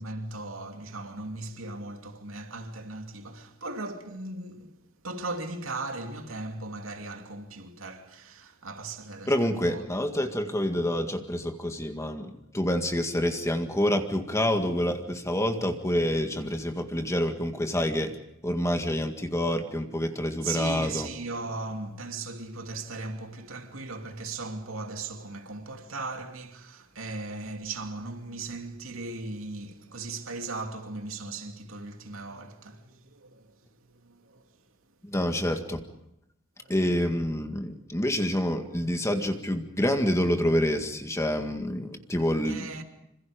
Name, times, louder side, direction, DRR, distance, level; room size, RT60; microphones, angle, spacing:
voice 1, 0.0-4.7 5.0-9.8 20.4-33.5 33.9-34.4 36.6-36.7 42.5-42.8, right 3 dB, 85° right, 2.8 m, -38 dB
voice 2, 9.3-18.2 18.4-21.1 35.0-35.8 36.7-42.7, left 1 dB, 15° left, 2.0 m, -27 dB
27.5 x 26.5 x 5.2 m
head